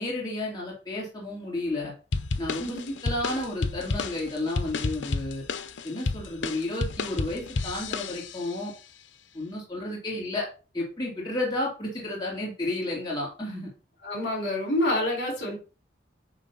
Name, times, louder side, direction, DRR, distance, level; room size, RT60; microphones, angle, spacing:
voice 1, 0.0-1.9 2.4-2.8 3.0-5.4 5.8-8.7 9.3-10.5 10.7-13.7, left 1 dB, 20° left, -4 dB, 2.6 m, -32 dB
sound 1, 2.1-8.5, left 3 dB, 85° left, 0.7 m, -31 dB
voice 2, 2.6-3.0 14.0-15.6, left 1 dB, 70° left, 1 dB, 4.0 m, -27 dB
9.1 x 3.3 x 5.5 m, 0.33 s
head